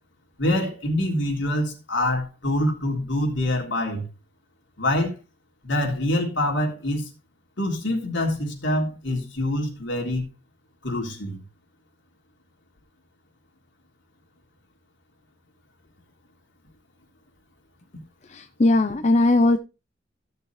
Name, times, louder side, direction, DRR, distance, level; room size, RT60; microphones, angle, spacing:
voice 1, 0.4-4.0 4.8-5.1 5.6-7.0 7.6-10.2 10.8-11.4, left 1 dB, 70° left, 3.6 m, -25 dB
voice 2, 18.3-19.6, left 2 dB, 35° left, 0.6 m, -19 dB
15.5 x 6.8 x 3.2 m
head